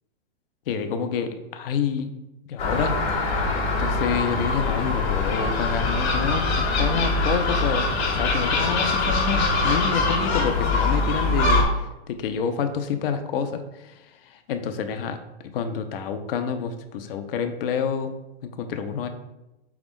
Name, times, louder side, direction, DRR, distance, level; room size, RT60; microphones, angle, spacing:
voice 1, 0.7-2.1 2.5-3.0 3.8-7.9 8.1-15.2 15.5-18.1 18.4-19.1, left 6 dB, 60° left, 8 dB, 0.6 m, -28 dB
Gull seagull, 2.6-11.6, left 3 dB, 45° left, 1.1 m, -23 dB
5.1 x 2.4 x 3.6 m, 0.97 s
hypercardioid pair, 155°, 32 cm